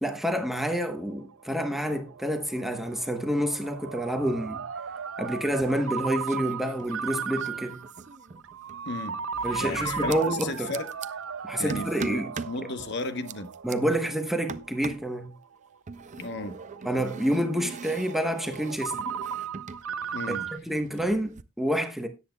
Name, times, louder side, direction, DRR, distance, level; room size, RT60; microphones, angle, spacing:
voice 1, 0.0-4.6 5.2-7.8 9.4-10.7 11.4-12.3 13.6-15.3 16.8-19.0 20.3-22.1, equal, ahead, 0.9 m, -28 dB
Ringtone, 1.0-20.6, right 7 dB, 85° right, 0.5 m, -37 dB
sound 1, 5.4-6.0 6.2-8.9 9.9-11.1 11.7-12.6 13.0-13.8 14.5-15.1 15.9-19.9 20.1-21.4, right 5 dB, 35° right, 0.5 m, -41 dB
voice 2, 8.9-9.2 9.6-10.9 11.6-13.5 16.2-16.6 20.1-20.5, left 2 dB, 60° left, 1.0 m, -34 dB
Livestock farm animals working animals, 9.3-10.2, left 3 dB, 90° left, 3.5 m, -39 dB
17.5 x 8.3 x 2.2 m
head